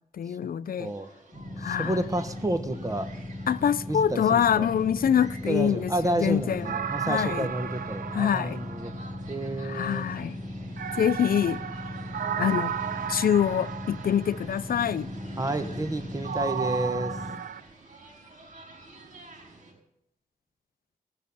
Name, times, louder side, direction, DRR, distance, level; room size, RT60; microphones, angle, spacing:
voice 1, 0.1-0.9 1.6-2.0 3.5-6.7 7.1-7.5 8.1-8.7 9.6-10.4 11.0-11.6 12.4-12.8 13.1-15.1, left 8 dB, 75° left, 0.5 m, -25 dB
sound 1, 0.8-19.7, right 2 dB, 55° right, 4.8 m, -50 dB
sound 2, 1.3-17.3, left 1 dB, 30° left, 3.8 m, -38 dB
voice 2, 1.6-3.1 3.9-4.7 5.0-5.2 5.5-8.9 9.3-10.0 12.4-12.5 15.4-17.2, right 1 dB, 20° right, 1.2 m, -30 dB
sound 3, 6.6-9.5 10.8-14.6 16.2-17.6, right 8 dB, 85° right, 0.6 m, -34 dB
18.0 x 6.3 x 7.0 m
wide cardioid pair, 85°, 15 cm